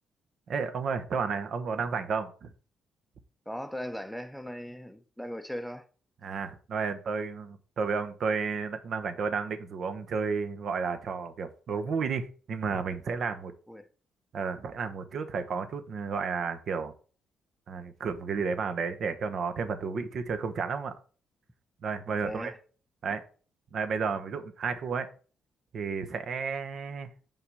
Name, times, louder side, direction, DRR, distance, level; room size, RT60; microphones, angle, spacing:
voice 1, 0.5-2.5 6.2-13.5 14.3-16.9 17.7-20.9 21.8-22.5 23.0-23.2 23.7-25.1 25.7-27.1, right 5 dB, 60° right, 0.9 m, -32 dB
voice 2, 3.5-5.9 13.7-13.9 22.2-22.6, equal, ahead, 0.7 m, -38 dB
5.7 x 3.5 x 5.4 m
cardioid pair, 90°, 0 cm